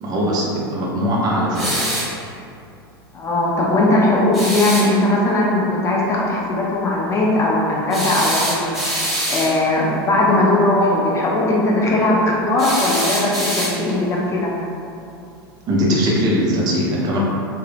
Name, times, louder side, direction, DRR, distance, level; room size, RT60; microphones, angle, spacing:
voice 1, 0.0-1.8 15.7-17.2, equal, 30° right, -4 dB, 0.7 m, -20 dB
sound 1, 1.5-2.2 4.3-4.9 7.9-9.6 12.6-14.0, equal, ahead, 1.1 m, -24 dB
voice 2, 3.1-8.7 9.3-13.3 13.6-14.5, left 2 dB, 25° left, -4 dB, 0.7 m, -18 dB
3.6 x 2.4 x 3.4 m, 2.6 s
figure-of-eight pair, 85°, 13 cm